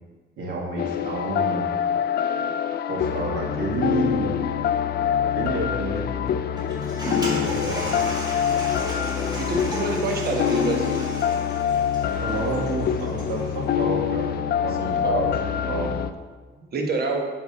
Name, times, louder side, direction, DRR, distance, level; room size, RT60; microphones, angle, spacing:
voice 1, 0.4-1.7 2.9-4.4 5.4-6.0 7.1-8.1 12.2-15.9, right 2 dB, 75° right, -3 dB, 1.9 m, -30 dB
sound 1, 0.8-16.1, left 9 dB, 55° left, 0.4 m, -25 dB
Toilet flush, 6.6-13.5, equal, 20° right, 2.3 m, -34 dB
voice 2, 9.4-11.0 15.0-15.2 16.6-17.3, right 3 dB, 50° right, 1 dB, 1.2 m, -26 dB
8.0 x 3.6 x 5.4 m, 1.4 s
cardioid pair, 90°, 20 cm